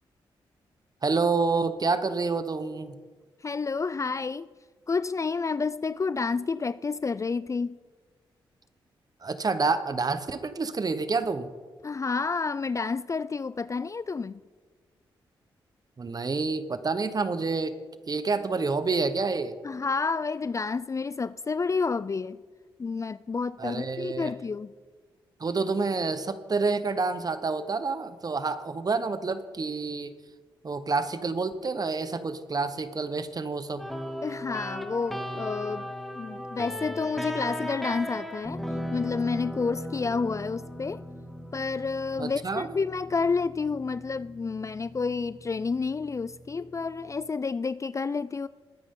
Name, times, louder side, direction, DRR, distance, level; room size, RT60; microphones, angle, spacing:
voice 1, 1.0-3.0 9.2-11.5 16.0-17.7 18.1-19.6 23.6-24.3 25.4-30.1 30.6-33.8 42.2-42.7, right 4 dB, 40° right, 1.1 m, -28 dB
voice 2, 3.4-4.5 4.9-7.8 11.8-14.4 19.6-22.4 22.8-24.7 34.2-35.9 36.2-38.6 38.9-41.1 41.5-48.5, left 4 dB, 30° left, 0.4 m, -30 dB
sound 1, 33.8-47.3, equal, ahead, 1.9 m, -38 dB
20.5 x 9.7 x 3.8 m
supercardioid pair, 50°, 10 cm